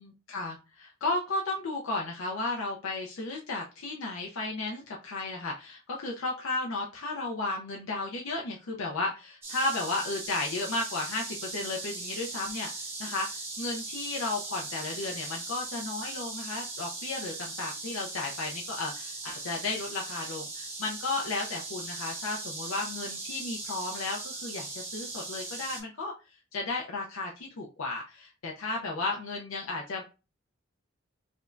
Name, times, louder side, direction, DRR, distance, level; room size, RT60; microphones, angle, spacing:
voice 1, 0.0-30.0, left 2 dB, 90° left, 0 dB, 0.6 m, -34 dB
sound 1, 9.4-25.8, right 3 dB, 10° right, 1.1 m, -39 dB
5.1 x 2.2 x 2.5 m, 0.30 s
head